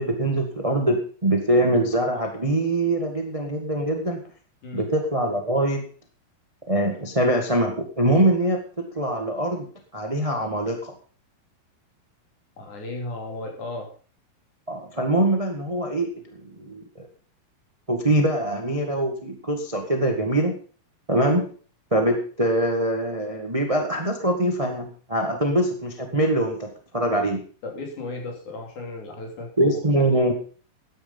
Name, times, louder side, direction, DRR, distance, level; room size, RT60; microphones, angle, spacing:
voice 1, 0.0-4.2 4.7-5.8 6.7-9.7 9.9-10.9 14.7-17.1 17.9-20.6 21.1-21.5 21.9-27.4 29.6-30.3, right 1 dB, 20° right, 4 dB, 1.0 m, -23 dB
voice 2, 12.6-13.9 25.3-25.4 27.6-29.8, left 2 dB, 60° left, 1 dB, 4.5 m, -35 dB
14.0 x 10.5 x 5.4 m, 0.40 s
omnidirectional pair, 4.0 m